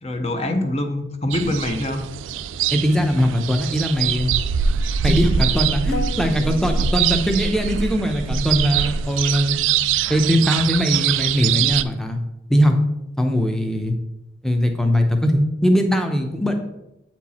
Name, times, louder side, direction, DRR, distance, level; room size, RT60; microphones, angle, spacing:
voice 1, 0.0-2.1 4.8-5.2, left 1 dB, 35° left, 6 dB, 0.8 m, -25 dB
sound 1, 1.3-11.8, right 7 dB, 90° right, 0.3 m, -23 dB
voice 2, 2.7-4.3 5.0-9.6 10.1-12.2 12.5-12.8 13.2-13.9 14.4-16.5, equal, ahead, 4 dB, 0.7 m, -20 dB
sound 2, 5.9-7.9, left 4 dB, 55° left, 0.4 m, -35 dB
8.4 x 4.5 x 4.2 m, 0.89 s
head